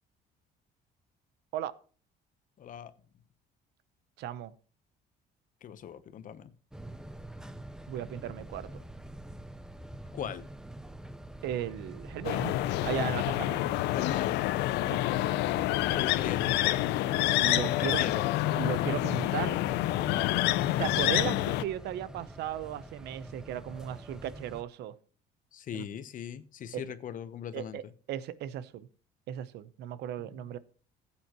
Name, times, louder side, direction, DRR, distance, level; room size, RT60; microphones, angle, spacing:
voice 1, 2.6-2.9 5.6-6.5 10.1-10.5 13.9-14.5 15.9-16.9 17.6-18.2 20.0-20.4 25.5-27.9 30.2-30.4, left 8 dB, 50° left, 14 dB, 1.0 m, -39 dB
voice 2, 4.2-4.5 7.9-8.7 11.4-13.7 14.9-15.0 17.3-18.0 18.5-19.6 20.8-25.0 25.7-25.8 26.7-26.8 27.5-27.8 28.1-28.9 29.3-30.6, right 11 dB, 80° right, 16 dB, 0.9 m, -36 dB
sound 1, 6.7-24.6, right 1 dB, 5° right, 0.8 m, -46 dB
sound 2, 12.2-21.6, left 16 dB, 90° left, 0.6 m, -28 dB
15.0 x 8.7 x 3.0 m, 0.41 s
cardioid pair, 110°, 17 cm